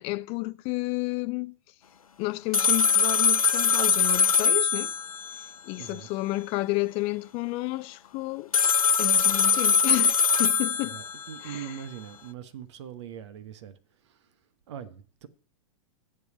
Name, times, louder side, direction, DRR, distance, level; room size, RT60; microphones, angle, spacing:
voice 1, 0.0-1.5 2.2-4.9 5.6-8.5 9.0-11.0 11.4-11.7, left 21 dB, 35° left, 0.6 m, -31 dB
sound 1, 2.5-5.5 8.5-11.4, left 6 dB, 85° left, 0.4 m, -22 dB
voice 2, 5.8-6.1 10.8-14.3 14.7-15.3, right 10 dB, 55° right, 1.1 m, -42 dB
7.9 x 7.6 x 8.4 m
figure-of-eight pair, 100°, 18 cm